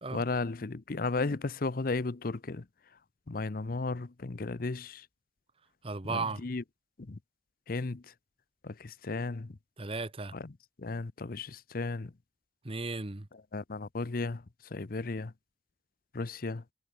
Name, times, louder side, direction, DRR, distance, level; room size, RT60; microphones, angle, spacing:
voice 1, 0.1-2.6 3.3-5.0 6.1-6.6 7.1-7.2 7.7-8.0 8.6-9.5 10.3-10.5 10.8-12.1 13.5-14.4 14.7-15.3 16.1-16.6, left 3 dB, 55° left, 0.7 m, -34 dB
voice 2, 5.8-6.4 9.8-10.3 12.6-13.3, right 3 dB, 35° right, 1.2 m, -35 dB
head